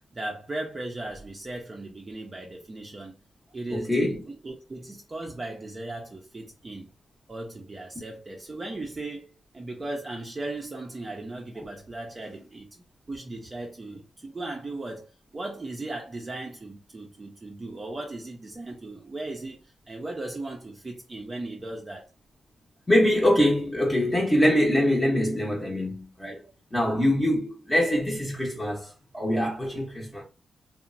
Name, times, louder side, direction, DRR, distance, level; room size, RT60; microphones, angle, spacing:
voice 1, 0.1-3.2 3.5-6.9 7.3-9.3 9.5-22.1, right 2 dB, 30° right, 0.5 m, -37 dB
voice 2, 3.7-4.2 11.6-11.7 22.9-26.4 26.7-30.2, left 1 dB, 15° left, 0.7 m, -24 dB
2.8 x 2.0 x 2.5 m
wide cardioid pair, 110°, 0 cm